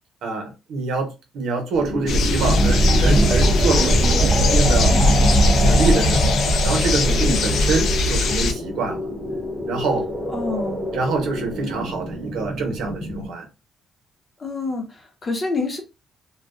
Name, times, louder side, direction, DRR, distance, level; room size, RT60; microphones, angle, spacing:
voice 1, 0.2-5.0 5.6-9.1 9.7-10.1 10.9-13.5, right 4 dB, 80° right, 0.9 m, -26 dB
sound 1, 1.7-13.3, equal, 5° right, 1.1 m, -29 dB
sound 2, 2.1-8.5, left 2 dB, 70° left, 0.4 m, -19 dB
sound 3, 2.4-7.4, right 2 dB, 35° right, 0.4 m, -23 dB
voice 2, 7.2-7.5 10.3-10.9 14.4-15.8, left 3 dB, 35° left, 0.9 m, -27 dB
2.3 x 2.2 x 2.4 m
cardioid pair, 90°, 0 cm